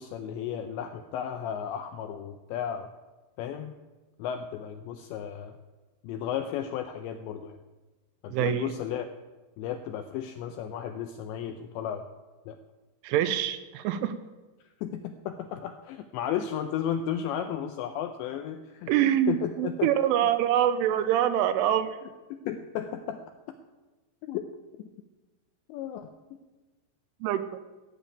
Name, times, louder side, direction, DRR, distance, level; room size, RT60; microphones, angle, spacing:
voice 1, 0.0-2.9 3.4-3.7 4.2-5.6 6.0-7.6 8.2-9.1 9.6-12.1 12.5-12.6 14.8-18.9 19.3-19.9 22.3-23.2 24.3-24.5 25.7-26.1, left 9 dB, 85° left, 7 dB, 2.6 m, -34 dB
voice 2, 8.3-8.7 13.0-14.1 18.9-22.0 27.2-27.6, right 11 dB, 85° right, 11 dB, 3.0 m, -25 dB
15.5 x 7.1 x 9.0 m, 1.2 s
omnidirectional pair, 5.9 m